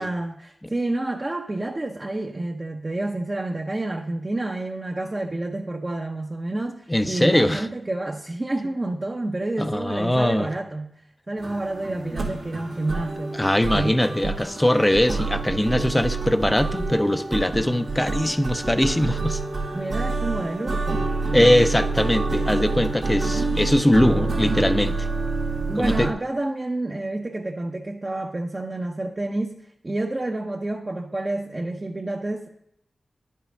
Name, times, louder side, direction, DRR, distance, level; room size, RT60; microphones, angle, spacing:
voice 1, 0.0-10.9 11.3-13.4 13.7-14.2 19.7-21.1 21.4-21.5 25.7-29.6 29.8-32.5, right 2 dB, 35° right, 1 dB, 0.8 m, -29 dB
voice 2, 6.9-7.7 9.6-10.5 12.1-12.2 13.4-19.4 21.3-25.1 25.8-26.1, left 1 dB, 10° left, 11 dB, 0.6 m, -21 dB
sound 1, 11.4-26.1, right 3 dB, 90° right, 1.9 m, -27 dB
10.5 x 5.7 x 5.1 m, 0.76 s
cardioid pair, 55°, 0 cm